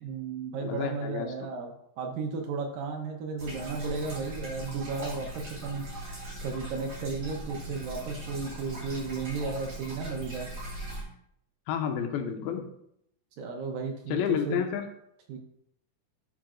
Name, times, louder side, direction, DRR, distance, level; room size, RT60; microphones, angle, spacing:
voice 1, 0.0-5.8 6.4-10.5 13.4-14.6 15.3-15.4, right 4 dB, 75° right, 3 dB, 2.3 m, -34 dB
voice 2, 0.6-1.3 11.7-12.7 14.1-14.9, left 8 dB, 85° left, 4 dB, 2.6 m, -30 dB
sound 1, 3.4-11.0, right 1 dB, 45° right, 3.9 m, -40 dB
12.0 x 5.0 x 2.5 m, 0.72 s
omnidirectional pair, 4.4 m